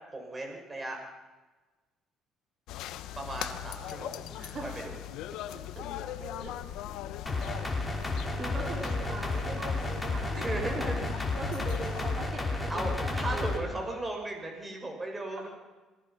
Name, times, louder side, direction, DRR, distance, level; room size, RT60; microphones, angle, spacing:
voice 1, 0.1-1.0 3.2-4.2 4.6-4.7 10.3-11.3 12.7-15.5, right 2 dB, 20° right, 2 dB, 6.4 m, -36 dB
sound 1, 2.7-12.3, left 12 dB, 75° left, 1.2 m, -40 dB
voice 2, 4.3-4.7 5.5-5.8 6.2-6.5 7.6-7.8 8.2-13.8 15.4-15.5, right 3 dB, 45° right, -1 dB, 4.8 m, -41 dB
sound 2, 7.3-13.6, left 3 dB, 10° left, 5.3 m, -32 dB
27.0 x 20.0 x 5.9 m, 1.2 s
cardioid pair, 95°, 0 cm